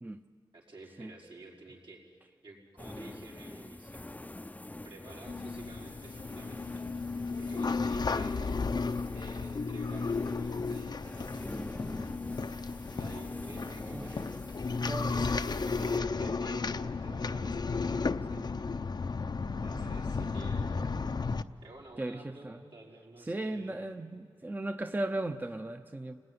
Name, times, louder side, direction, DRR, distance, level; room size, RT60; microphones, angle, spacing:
voice 1, 0.5-4.0 4.8-11.7 12.9-17.9 19.6-21.0 21.6-23.9, right 2 dB, 75° right, -3 dB, 5.1 m, -51 dB
sound 1, 2.8-16.0, left 2 dB, 15° left, 0.6 m, -45 dB
sound 2, 5.3-21.4, left 4 dB, 55° left, 0.7 m, -34 dB
voice 2, 14.9-15.3 18.3-18.5 19.7-19.9 22.0-22.6 23.3-26.2, right 2 dB, 20° right, 7 dB, 0.8 m, -36 dB
29.0 x 19.5 x 9.7 m, 2.1 s
cardioid pair, 65°, 9 cm